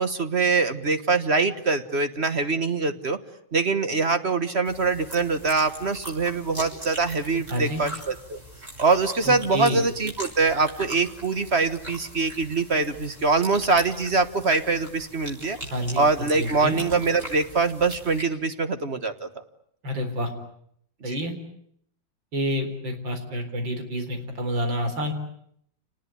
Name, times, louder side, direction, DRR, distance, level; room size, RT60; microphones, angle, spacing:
voice 1, 0.0-3.2 3.5-8.4 8.8-15.6 16.0-19.3 21.0-21.2, right 4 dB, 40° right, 10 dB, 1.5 m, -24 dB
sound 1, 4.6-18.2, equal, 20° right, 6.5 m, -41 dB
voice 2, 7.5-7.8 9.2-9.8 15.7-16.1 16.4-16.8 19.8-20.3 21.0-21.3 22.3-25.1, equal, 85° right, 6 dB, 4.9 m, -28 dB
28.5 x 19.5 x 9.9 m, 0.69 s
omnidirectional pair, 2.0 m